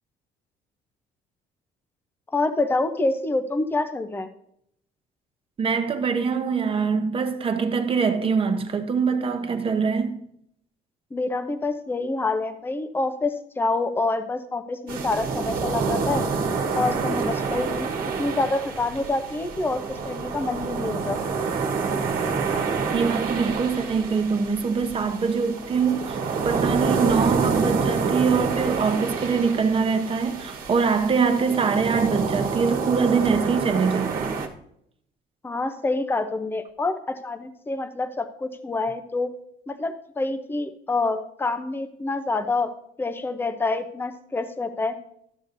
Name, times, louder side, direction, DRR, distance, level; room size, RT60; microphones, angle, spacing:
voice 1, 2.3-4.3 11.1-16.3 16.8-17.9 18.2-21.3 35.4-39.3 39.7-42.7 43.0-44.9, left 3 dB, 15° left, 0.7 m, -27 dB
voice 2, 5.6-10.2 22.9-26.2 26.4-34.4, right 5 dB, 35° right, 1.0 m, -23 dB
sound 1, 14.9-34.5, right 5 dB, 60° right, 1.4 m, -27 dB
12.5 x 6.9 x 2.6 m
cardioid pair, 110°, 17 cm